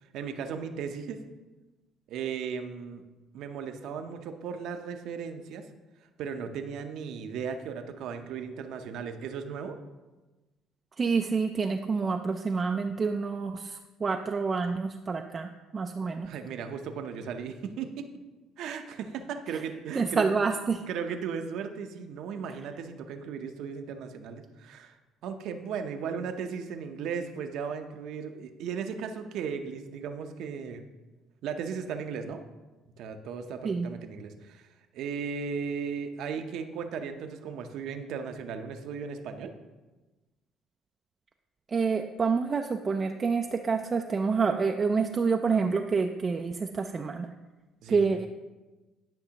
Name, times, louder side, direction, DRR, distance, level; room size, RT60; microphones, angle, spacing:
voice 1, 0.1-1.2 2.1-3.0 3.3-5.7 6.2-9.8 16.2-18.1 18.6-20.3 20.9-24.9 25.2-30.8 31.4-32.4 33.0-34.7 34.9-39.5 47.8-48.1, right 6 dB, 75° right, 7 dB, 0.7 m, -36 dB
voice 2, 11.0-16.3 19.9-20.8 33.6-33.9 41.7-47.3 47.9-48.3, right 5 dB, 35° right, 4 dB, 0.4 m, -28 dB
10.5 x 5.4 x 2.9 m, 1.2 s
cardioid pair, 90°, 0 cm